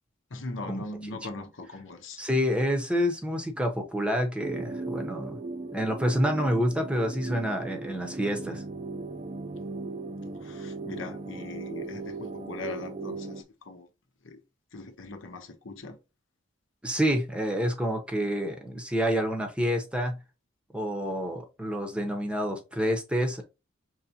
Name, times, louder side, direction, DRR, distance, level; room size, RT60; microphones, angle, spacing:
voice 1, 0.3-2.2 10.3-13.9 14.2-14.4 14.7-16.0, left 3 dB, 75° left, 0.9 m, -40 dB
voice 2, 2.2-5.4 5.7-8.6 16.8-20.2 20.7-23.4, equal, 5° right, 0.7 m, -28 dB
sound 1, 4.4-13.4, right 3 dB, 30° right, 0.4 m, -37 dB
5.6 x 3.2 x 2.7 m
head